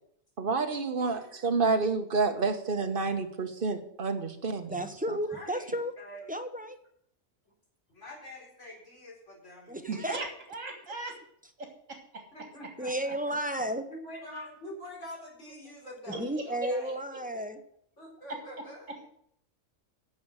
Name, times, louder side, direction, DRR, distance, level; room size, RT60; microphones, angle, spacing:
voice 1, 0.4-4.8, right 4 dB, 40° right, 6 dB, 1.3 m, -29 dB
voice 2, 1.0-1.3 5.3-6.4 7.9-9.8 12.3-13.4 13.9-16.9 18.0-18.9, left 1 dB, 60° left, -2 dB, 4.4 m, -46 dB
voice 3, 4.6-5.9 6.3-6.8 9.7-10.2 12.8-13.8 16.2-17.6, right 1 dB, 10° right, 7 dB, 0.6 m, -33 dB
voice 4, 9.9-11.2 11.6-12.3 16.1-16.7 17.3-17.4 18.3-18.4, right 3 dB, 65° right, 2 dB, 2.2 m, -38 dB
10.5 x 6.8 x 7.6 m, 0.69 s
omnidirectional pair, 1.4 m